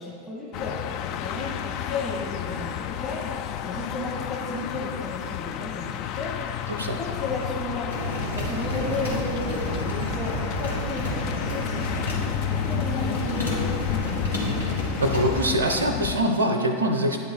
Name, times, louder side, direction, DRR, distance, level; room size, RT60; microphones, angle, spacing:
voice 1, 0.0-6.3 6.8-14.6, left 2 dB, 15° left, -7 dB, 1.2 m, -34 dB
sound 1, 0.5-16.2, left 11 dB, 45° left, 0.4 m, -31 dB
sound 2, 7.9-15.4, equal, 90° left, 1.5 m, -30 dB
voice 2, 15.0-17.2, right 1 dB, 75° right, 4 dB, 0.5 m, -23 dB
9.4 x 3.5 x 6.5 m, 2.4 s
figure-of-eight pair, 90°, 0 cm